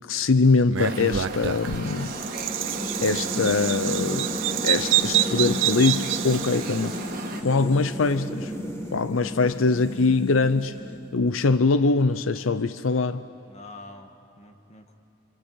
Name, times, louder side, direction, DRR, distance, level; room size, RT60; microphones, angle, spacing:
voice 1, 0.1-2.2 3.0-4.3 4.6-6.9 7.4-8.5 8.9-10.8 11.1-13.2, left 3 dB, 90° left, 0.6 m, -22 dB
Bird vocalization bird call bird song, 0.7-7.0, right 12 dB, 75° right, 0.6 m, -27 dB
sound 1, 0.8-7.4, right 3 dB, 45° right, 1.8 m, -35 dB
sound 2, 2.1-11.4, equal, 15° left, 2.2 m, -34 dB
voice 2, 6.3-6.7 13.5-14.9, left 2 dB, 35° left, 1.8 m, -46 dB
26.5 x 26.0 x 8.3 m
head